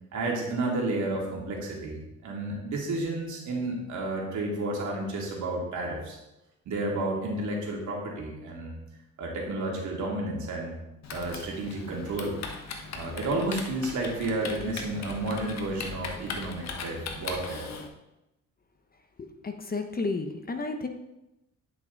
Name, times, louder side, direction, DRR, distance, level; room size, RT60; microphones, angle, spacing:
voice 1, 0.1-6.2 6.6-8.8 9.2-10.8 11.1-12.4 12.9-17.7, right 2 dB, 70° right, -2 dB, 2.7 m, -31 dB
Typing, 11.0-17.9, left 4 dB, 60° left, 1.3 m, -39 dB
voice 2, 19.2-20.9, left 3 dB, 30° left, 6 dB, 1.1 m, -32 dB
10.0 x 6.0 x 4.0 m, 0.93 s
cardioid pair, 90°, 30 cm